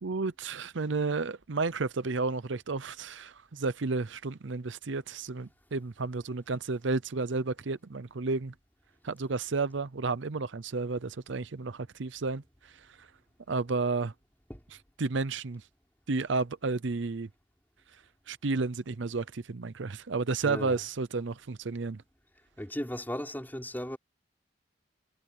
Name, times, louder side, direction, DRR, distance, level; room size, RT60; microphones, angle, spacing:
voice 1, 0.0-8.5 9.0-12.7 13.0-13.1 13.5-14.1 15.0-15.6 16.1-17.3 18.3-22.0, right 3 dB, 70° right, 0.7 m, -32 dB
voice 2, 20.4-20.8 22.6-24.0, equal, 10° left, 4.6 m, -36 dB
head